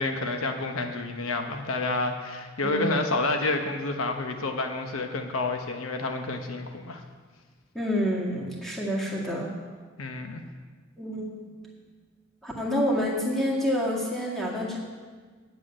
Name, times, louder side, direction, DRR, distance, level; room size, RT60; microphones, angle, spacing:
voice 1, 0.0-7.0 10.0-10.4, left 2 dB, 85° left, 5 dB, 1.0 m, -29 dB
voice 2, 2.6-3.0 7.7-9.5 11.0-11.5 12.4-14.8, equal, ahead, -4 dB, 2.0 m, -28 dB
8.0 x 7.7 x 8.8 m, 1.5 s
head